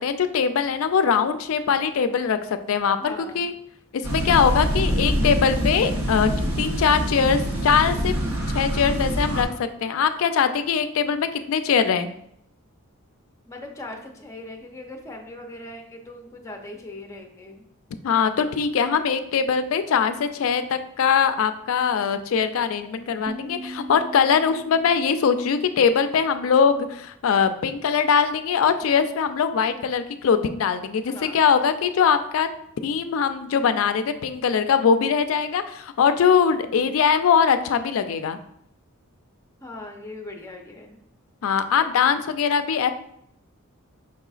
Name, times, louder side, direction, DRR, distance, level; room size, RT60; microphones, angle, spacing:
voice 1, 0.0-2.4 2.7-3.5 3.9-6.3 6.6-8.1 8.5-12.1 18.0-32.5 32.8-38.4 41.4-42.9, left 6 dB, 65° left, 10 dB, 0.3 m, -21 dB
voice 2, 3.0-3.5 13.4-17.6 31.0-31.4 36.6-37.0 39.6-41.0, left 2 dB, 15° left, 2 dB, 0.5 m, -40 dB
sound 1, 4.0-9.4, equal, 75° right, 0.9 m, -25 dB
sound 2, 23.3-26.3, right 2 dB, 45° right, 0.3 m, -40 dB
5.3 x 3.8 x 2.4 m, 0.73 s
head